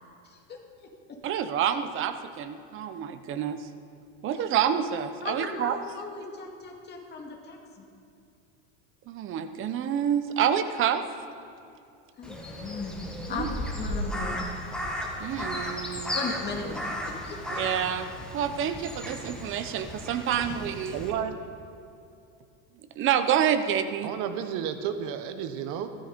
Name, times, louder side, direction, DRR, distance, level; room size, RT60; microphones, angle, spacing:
voice 1, 0.2-1.2 4.4-4.5 5.2-7.8 12.2-14.6 16.1-17.6, left 4 dB, 30° left, 2 dB, 2.1 m, -37 dB
voice 2, 1.2-3.7 4.2-5.8 9.1-11.0 13.3-13.5 15.2-16.2 17.6-18.1 18.3-21.0 23.0-24.1, right 9 dB, 35° right, 10 dB, 0.9 m, -28 dB
Crow, 12.2-21.1, equal, ahead, 1.6 m, -35 dB
voice 3, 20.9-21.4 24.0-25.9, right 8 dB, 55° right, 9 dB, 1.2 m, -32 dB
15.0 x 13.0 x 5.2 m, 2.6 s
supercardioid pair, 145°, 36 cm